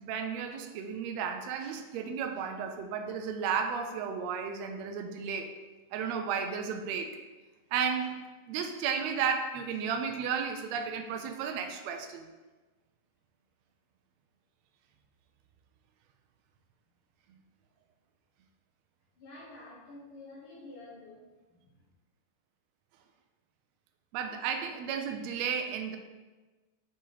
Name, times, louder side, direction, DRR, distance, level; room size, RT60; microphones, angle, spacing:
voice 1, 0.0-5.5 5.9-7.1 7.7-8.2 8.5-12.3 24.1-26.0, right 6 dB, 90° right, 5 dB, 1.5 m, -33 dB
voice 2, 19.2-21.9, left 2 dB, 50° left, -4 dB, 1.7 m, -49 dB
6.5 x 6.4 x 4.0 m, 1.2 s
omnidirectional pair, 3.8 m